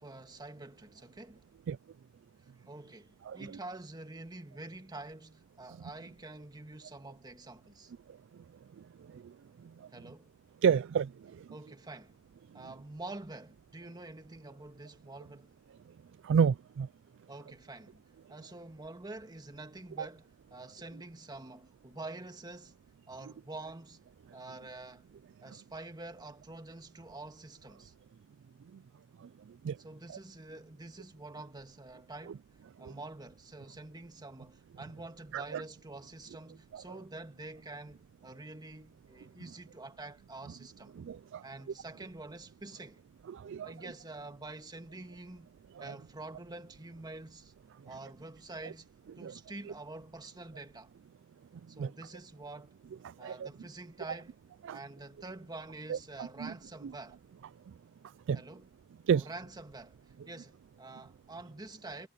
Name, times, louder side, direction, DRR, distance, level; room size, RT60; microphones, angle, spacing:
voice 1, 0.0-1.4 2.6-7.9 9.9-10.3 11.5-12.2 12.5-15.5 17.3-18.0 18.3-22.7 23.1-24.0 24.3-25.1 25.4-27.9 29.8-32.4 32.8-40.9 41.4-43.0 43.6-45.5 45.8-47.5 47.9-48.9 49.2-50.9 51.7-52.8 53.2-54.4 54.7-57.2 58.3-58.7 59.1-62.1, right 2 dB, 20° right, 1.7 m, -47 dB
voice 2, 3.3-3.6 9.1-9.2 10.6-11.1 16.2-16.9 20.0-20.1 29.6-29.8 30.1-30.2 35.3-35.6 36.7-36.8 41.0-41.4 43.3-43.7 49.2-49.3 51.8-51.9 53.2-53.5 54.6-54.8 55.9-56.5 56.8-56.9 58.3-58.4 59.1-59.3, right 7 dB, 60° right, 0.3 m, -30 dB
head